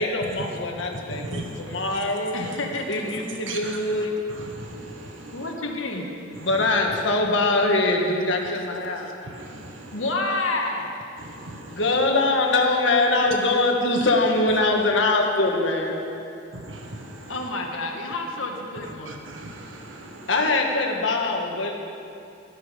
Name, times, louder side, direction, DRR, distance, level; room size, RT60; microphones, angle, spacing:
voice 1, 0.0-2.4 2.9-4.2 6.4-9.1 11.7-16.0 20.3-21.7, left 2 dB, 70° left, 1 dB, 1.7 m, -23 dB
voice 2, 1.1-1.6 3.5-4.0 4.5-5.3 9.3-9.9 11.2-11.7 17.0-17.2 19.1-20.3, right 2 dB, 75° right, 2 dB, 1.4 m, -38 dB
voice 3, 2.3-3.2 5.3-6.6 8.4-9.1 9.9-10.9 17.3-19.2, left 2 dB, 90° left, 1 dB, 1.7 m, -30 dB
14.0 x 13.5 x 5.2 m, 2.6 s
head